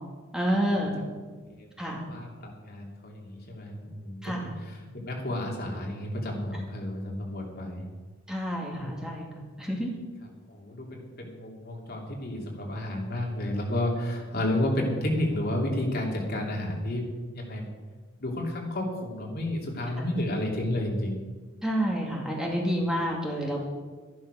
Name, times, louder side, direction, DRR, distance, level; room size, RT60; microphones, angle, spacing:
voice 1, 0.3-1.0 1.8-2.0 4.2-4.5 8.3-9.9 21.6-23.6, equal, 5° right, -2 dB, 2.3 m, -29 dB
voice 2, 1.4-4.8 5.0-7.9 8.8-8.9 9.7-9.8 10.5-17.1 17.3-17.7 18.2-21.2, left 1 dB, 50° left, 0 dB, 3.0 m, -31 dB
12.5 x 11.5 x 6.4 m, 1.4 s
head